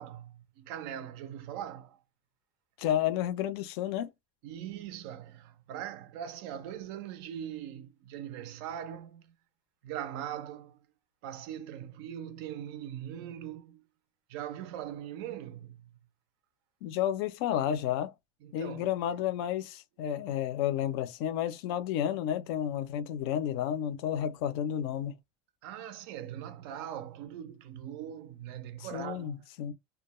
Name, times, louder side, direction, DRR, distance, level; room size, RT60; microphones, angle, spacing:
voice 1, 0.0-2.0 4.4-9.3 9.8-10.8 11.2-13.8 14.3-16.0 18.4-18.9 25.6-29.4, right 10 dB, 50° right, 0.4 m, -41 dB
voice 2, 2.8-4.1 16.8-18.1 18.5-25.2 28.8-29.7, left 10 dB, 50° left, 0.4 m, -31 dB
2.3 x 2.1 x 2.9 m
supercardioid pair, 160°, 16 cm